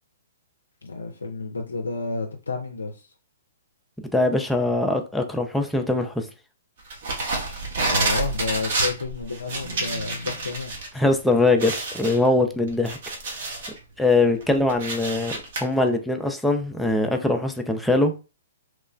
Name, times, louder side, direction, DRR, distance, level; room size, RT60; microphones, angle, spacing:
voice 1, 0.8-3.1 7.8-10.7, left 3 dB, 80° left, 0.4 m, -30 dB
voice 2, 4.1-6.3 10.9-13.0 14.0-18.1, left 2 dB, 5° left, 0.4 m, -22 dB
sound 1, 6.9-10.9 11.2-11.3 11.6-13.8 14.2-15.6, right 3 dB, 55° right, 0.9 m, -28 dB
3.0 x 2.1 x 2.4 m
figure-of-eight pair, 120°, 0 cm